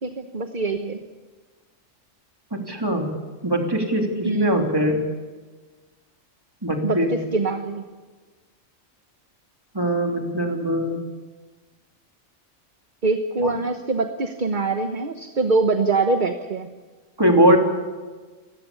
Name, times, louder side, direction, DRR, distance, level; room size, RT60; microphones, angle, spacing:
voice 1, 0.0-1.0 4.2-4.5 6.8-7.8 13.0-16.7, right 3 dB, 40° right, 7 dB, 1.2 m, -24 dB
voice 2, 2.5-3.1 3.4-5.0 6.6-7.1 9.7-11.0 13.4-13.5 17.2-17.6, right 1 dB, 15° right, 2 dB, 3.1 m, -21 dB
28.5 x 15.5 x 8.4 m, 1.4 s
omnidirectional pair, 1.4 m